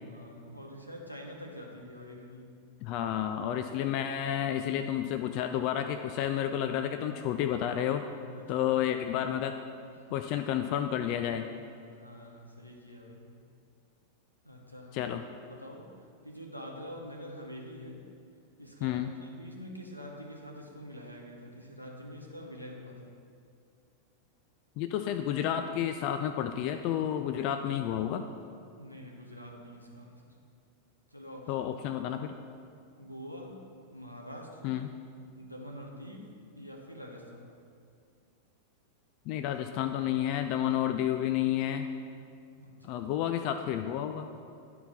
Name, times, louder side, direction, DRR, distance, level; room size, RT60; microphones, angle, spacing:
voice 1, 0.0-2.6 8.2-8.7 10.1-10.2 11.8-13.3 14.4-15.0 15.5-18.1 18.6-23.1 28.8-30.4 31.1-31.7 33.0-34.8 35.3-37.5 42.6-43.0, equal, 90° left, 1 dB, 1.0 m, -46 dB
voice 2, 2.8-8.0 8.5-9.6 10.1-11.5 14.9-15.2 18.8-19.1 24.8-28.2 31.5-32.4 34.6-34.9 39.3-41.9 42.8-44.3, left 10 dB, 45° left, 7 dB, 0.3 m, -30 dB
11.0 x 4.5 x 4.2 m, 2.4 s
figure-of-eight pair, 90°, 0 cm